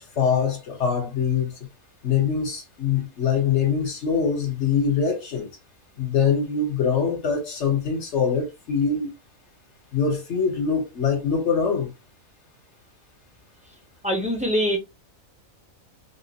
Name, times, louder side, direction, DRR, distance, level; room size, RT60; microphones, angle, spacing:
voice 1, 0.0-1.5 2.0-5.5 6.0-9.1 9.9-11.9, left 6 dB, 55° left, 1.3 m, -23 dB
voice 2, 14.0-14.8, equal, 5° right, 0.7 m, -23 dB
3.6 x 2.5 x 2.9 m
omnidirectional pair, 1.5 m